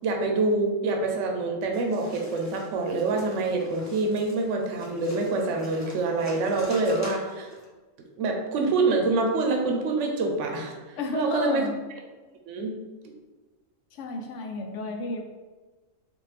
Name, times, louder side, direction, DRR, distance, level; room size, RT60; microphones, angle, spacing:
voice 1, 0.0-7.5 8.2-11.6 12.5-12.8, right 3 dB, 70° right, 2 dB, 0.9 m, -26 dB
sound 1, 1.7-7.7, left 1 dB, 20° left, 0.5 m, -46 dB
voice 2, 11.0-11.8 13.9-15.2, left 3 dB, 70° left, 2 dB, 0.9 m, -32 dB
4.2 x 2.6 x 3.3 m, 1.3 s
omnidirectional pair, 1.4 m